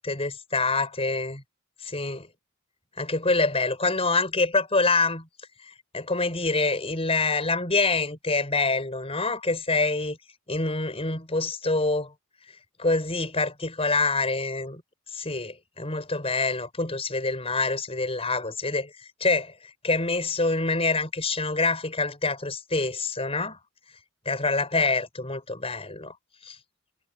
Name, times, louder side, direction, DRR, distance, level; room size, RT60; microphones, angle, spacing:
voice 1, 0.0-1.4 1.8-2.3 3.0-5.3 5.9-10.2 10.5-12.1 12.8-14.8 15.1-19.5 19.8-23.6 24.2-26.1 26.4-26.6, left 3 dB, 25° left, 6.8 m, -26 dB
head